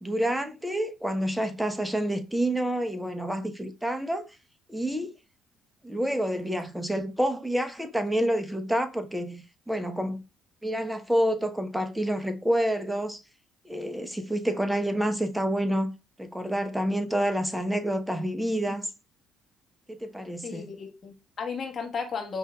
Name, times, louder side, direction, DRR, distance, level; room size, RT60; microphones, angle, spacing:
voice 1, 0.0-4.2 4.7-5.1 5.8-10.2 10.6-13.2 13.6-15.9 16.2-18.9 19.9-20.7, equal, 5° right, 0.9 m, -28 dB
voice 2, 20.4-22.4, left 5 dB, 50° left, 1.1 m, -34 dB
5.6 x 2.7 x 2.2 m
hypercardioid pair, 60°, 0 cm